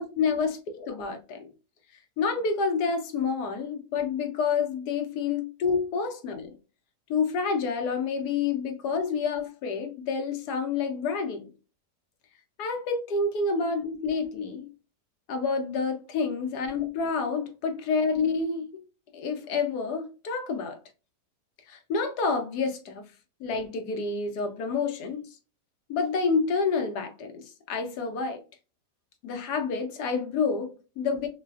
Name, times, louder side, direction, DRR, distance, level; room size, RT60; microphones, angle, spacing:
voice 1, 0.0-1.5 2.2-6.5 7.1-11.5 12.6-14.7 15.3-18.8 19.1-20.8 21.7-23.0 23.4-25.3 25.9-28.4 29.2-31.3, left 5 dB, 75° left, 1.1 m, -28 dB
3.9 x 2.3 x 2.3 m
omnidirectional pair, 1.8 m